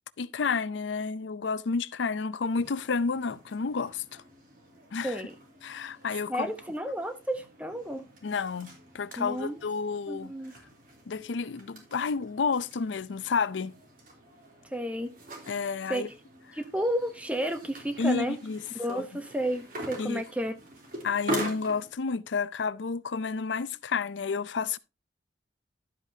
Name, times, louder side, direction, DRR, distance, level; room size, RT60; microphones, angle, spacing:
voice 1, 0.2-4.2 4.9-5.2 5.6-6.5 8.2-10.3 11.1-13.7 15.5-16.1 18.0-18.6 18.9-19.0 20.0-20.2 21.0-24.8, left 5 dB, 90° left, 0.5 m, -30 dB
sound 1, 2.4-21.9, right 1 dB, 50° right, 3.1 m, -43 dB
voice 2, 5.0-5.3 6.3-8.1 9.2-9.6 10.1-10.5 14.6-15.1 15.9-16.2 16.5-18.4 18.7-20.6, equal, 5° right, 0.8 m, -32 dB
12.0 x 8.1 x 2.7 m
head